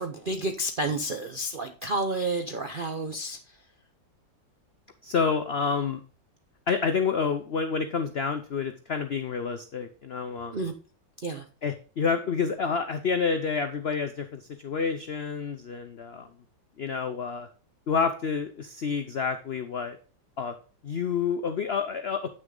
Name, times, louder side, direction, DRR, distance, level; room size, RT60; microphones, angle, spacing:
voice 1, 0.0-3.4 10.5-10.7 11.2-11.4, right 2 dB, 60° right, 6 dB, 0.5 m, -30 dB
voice 2, 5.0-6.0 6.7-10.6 11.6-16.3 16.8-17.5 17.9-20.0 20.4-20.5 20.8-22.3, left 5 dB, 70° left, 8 dB, 0.6 m, -28 dB
9.1 x 6.3 x 3.8 m, 0.38 s
omnidirectional pair, 1.9 m